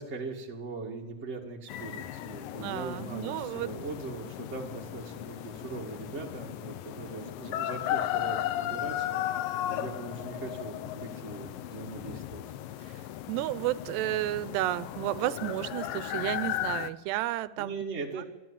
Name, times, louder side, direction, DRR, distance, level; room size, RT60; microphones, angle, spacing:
voice 1, 0.0-12.4 17.6-18.2, right 3 dB, 30° right, 0 dB, 1.3 m, -40 dB
sound 1, 1.7-16.9, left 12 dB, 75° left, 2.2 m, -36 dB
voice 2, 2.6-3.7 13.3-17.8, right 15 dB, 85° right, 17 dB, 2.9 m, -32 dB
27.5 x 11.5 x 8.8 m, 1.2 s
omnidirectional pair, 4.7 m